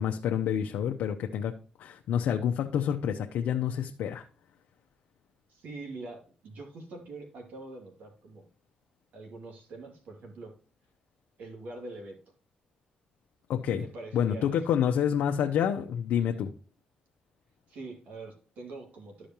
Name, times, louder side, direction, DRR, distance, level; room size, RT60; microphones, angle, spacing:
voice 1, 0.0-4.2 13.5-13.9 14.1-16.5, left 9 dB, 85° left, 0.7 m, -28 dB
voice 2, 5.5-8.4 9.1-10.5 11.4-12.2 13.7-14.6 16.2-16.4 17.7-19.3, right 2 dB, 80° right, 2.5 m, -44 dB
13.0 x 5.1 x 2.9 m
cardioid pair, 90°, 3 cm